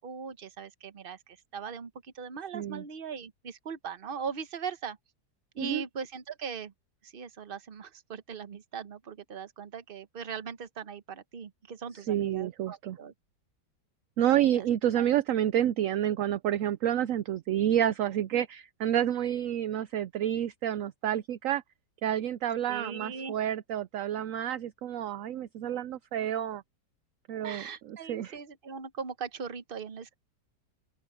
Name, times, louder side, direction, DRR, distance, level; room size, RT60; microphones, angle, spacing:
voice 1, 0.0-5.0 5.5-6.7 7.0-13.1 14.3-14.6 14.9-15.1 22.7-23.4 27.4-30.1, right 6 dB, 40° right, 1.0 m, -40 dB
voice 2, 2.5-2.8 5.6-5.8 12.1-13.0 14.2-21.6 22.0-26.6 27.3-28.3, right 11 dB, 65° right, 0.8 m, -29 dB
open air
omnidirectional pair, 1.8 m